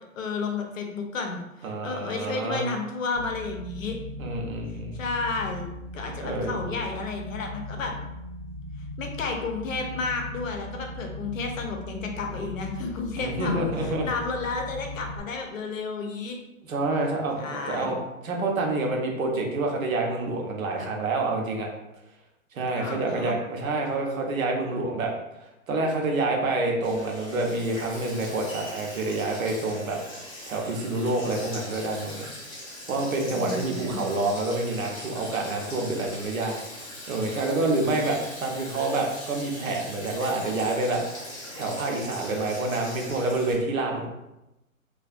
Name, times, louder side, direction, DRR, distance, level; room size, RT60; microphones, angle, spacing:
voice 1, 0.0-4.0 4.9-7.9 9.0-16.4 17.4-18.0 22.8-23.4 33.3-34.0, left 4 dB, 65° left, 3 dB, 0.6 m, -32 dB
voice 2, 1.6-2.7 4.2-5.0 6.2-6.6 13.2-14.1 16.7-18.0 18.2-21.7 22.5-25.1 25.7-30.0 30.5-32.2 32.9-41.0 41.5-44.1, right 2 dB, 70° right, 1 dB, 0.7 m, -27 dB
sound 1, 3.1-15.2, left 1 dB, 20° right, 0.6 m, -38 dB
Sink (filling or washing), 26.8-43.5, left 1 dB, 25° left, 0.6 m, -41 dB
2.3 x 2.2 x 2.5 m, 0.93 s
hypercardioid pair, 160°, 43 cm